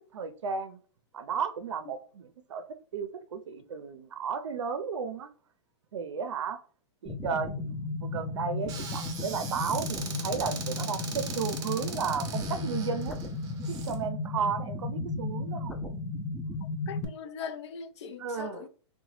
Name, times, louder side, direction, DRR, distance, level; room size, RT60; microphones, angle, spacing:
voice 1, 0.1-0.8 1.1-2.6 2.9-5.3 5.9-6.6 7.0-13.2 13.7-15.8 18.2-18.6, right 6 dB, 90° right, 0.5 m, -34 dB
sound 1, 7.1-17.1, left 3 dB, 5° left, 0.3 m, -35 dB
Squeak / Cupboard open or close, 8.7-14.0, right 5 dB, 25° right, 0.7 m, -40 dB
voice 2, 16.9-18.7, left 6 dB, 70° left, 0.5 m, -40 dB
2.8 x 2.1 x 3.0 m
hypercardioid pair, 135°, 15 cm